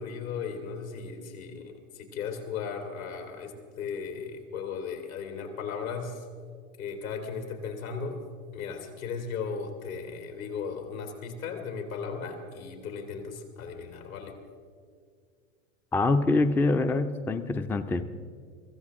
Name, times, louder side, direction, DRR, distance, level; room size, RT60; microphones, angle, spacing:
voice 1, 0.0-6.2 6.8-8.2 8.5-14.3, left 5 dB, 75° left, 3 dB, 3.1 m, -36 dB
voice 2, 15.9-18.0, left 3 dB, 5° left, 9 dB, 0.4 m, -25 dB
23.5 x 14.5 x 3.7 m, 2.1 s
hypercardioid pair, 95°, 41 cm